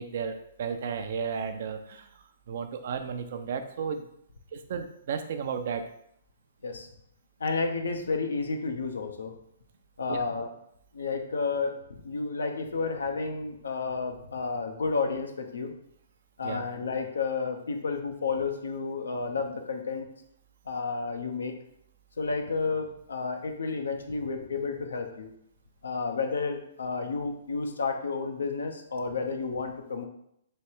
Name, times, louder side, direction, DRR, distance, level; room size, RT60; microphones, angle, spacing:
voice 1, 0.0-2.1 2.5-4.1 4.5-5.9 10.1-10.2 16.4-16.6, right 6 dB, 60° right, 7 dB, 0.5 m, -33 dB
voice 2, 7.4-9.3 10.0-10.5 10.9-11.8 12.0-15.7 16.4-20.1 20.7-21.5 22.2-25.3 25.8-30.1, left 4 dB, 80° left, 4 dB, 0.7 m, -31 dB
3.3 x 3.1 x 4.4 m, 0.72 s
hypercardioid pair, 130°, 0 cm